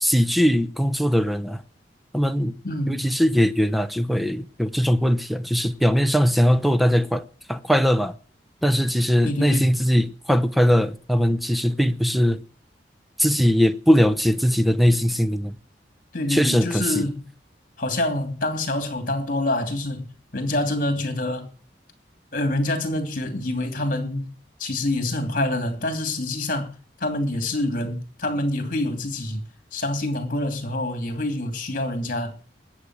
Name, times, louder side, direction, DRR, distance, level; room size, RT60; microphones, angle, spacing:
voice 1, 0.0-1.6 2.1-2.6 2.9-8.1 8.6-12.4 13.2-15.5 16.3-17.1, equal, ahead, 0.8 m, -20 dB
voice 2, 2.6-3.1 9.2-10.0 16.1-17.2 17.8-21.5 22.3-24.3 24.6-26.7 27.0-29.4 29.7-32.3, left 1 dB, 50° left, 2.8 m, -26 dB
20.5 x 8.2 x 6.2 m
head